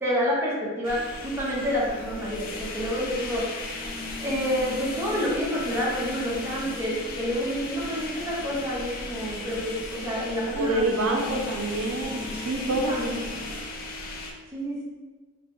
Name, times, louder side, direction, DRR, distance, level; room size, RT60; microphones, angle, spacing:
voice 1, 0.0-1.0 1.2-3.4 4.2-11.5 12.6-13.3 14.5-14.8, equal, 10° right, -7 dB, 0.7 m, -28 dB
sound 1, 0.8-14.3, left 2 dB, 45° left, 0.4 m, -36 dB
voice 2, 10.5-13.0, right 2 dB, 80° right, 2 dB, 0.4 m, -27 dB
2.9 x 2.1 x 3.4 m, 1.4 s
head